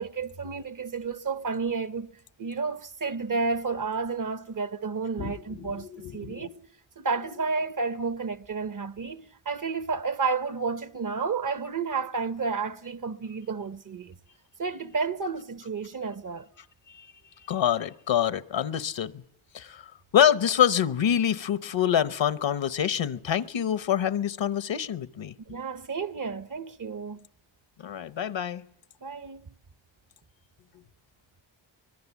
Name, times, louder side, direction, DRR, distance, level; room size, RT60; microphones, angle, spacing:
voice 1, 0.0-2.1 2.4-6.5 7.0-14.1 14.6-16.5 25.5-27.3 29.0-29.5, right 4 dB, 40° right, 1.0 m, -31 dB
voice 2, 5.2-6.5 16.9-17.1 17.5-19.2 19.5-19.9 20.1-25.3 27.8-28.6, left 9 dB, 65° left, 1.0 m, -26 dB
24.0 x 21.0 x 7.2 m
cardioid pair, 65°, 47 cm